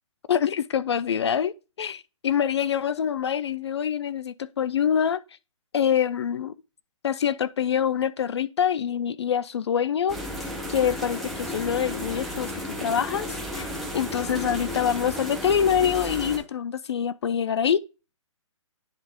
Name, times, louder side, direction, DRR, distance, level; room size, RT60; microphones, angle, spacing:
voice 1, 0.3-5.2 5.7-6.5 7.0-12.5 12.8-17.8, left 8 dB, 55° left, 0.4 m, -25 dB
sound 1, 10.1-16.4, left 1 dB, ahead, 0.6 m, -33 dB
10.5 x 3.4 x 3.5 m
hypercardioid pair, 170°, 17 cm